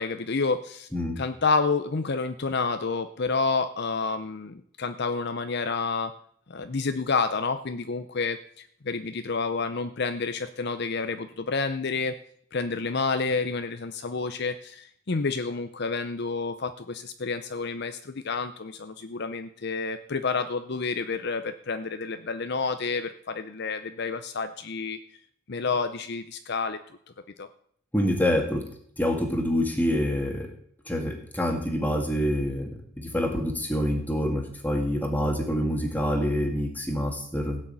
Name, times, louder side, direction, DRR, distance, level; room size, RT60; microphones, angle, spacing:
voice 1, 0.0-0.9 1.2-6.1 6.5-12.2 12.5-25.0 25.5-26.8 27.4-27.5, left 4 dB, 50° left, 10 dB, 0.6 m, -29 dB
voice 2, 27.9-28.6 29.0-30.5 30.9-32.7 33.0-37.6, equal, 10° left, 3 dB, 2.0 m, -26 dB
16.5 x 6.4 x 8.7 m, 0.65 s
head